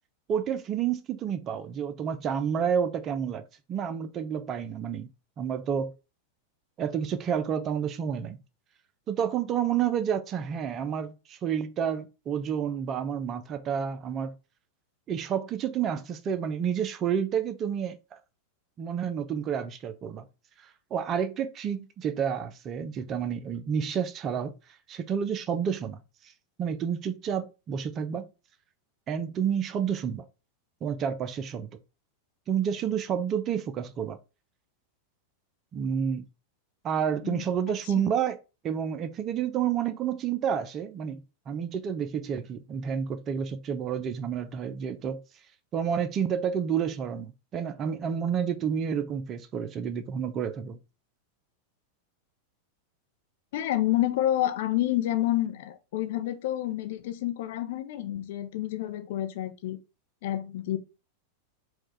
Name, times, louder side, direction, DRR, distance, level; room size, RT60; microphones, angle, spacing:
voice 1, 0.3-3.4 3.7-5.1 5.4-5.9 6.8-8.4 9.1-14.3 15.1-18.2 18.8-20.3 20.9-24.5 24.9-26.0 26.6-28.3 29.1-30.2 30.8-31.7 32.5-34.2 35.7-36.3 36.8-38.4 38.6-45.2 45.7-50.8, right 8 dB, 30° right, 0.4 m, -30 dB
voice 2, 53.5-59.8 60.2-60.8, left 13 dB, 55° left, 0.6 m, -29 dB
4.4 x 2.3 x 3.3 m
figure-of-eight pair, 90°, 0 cm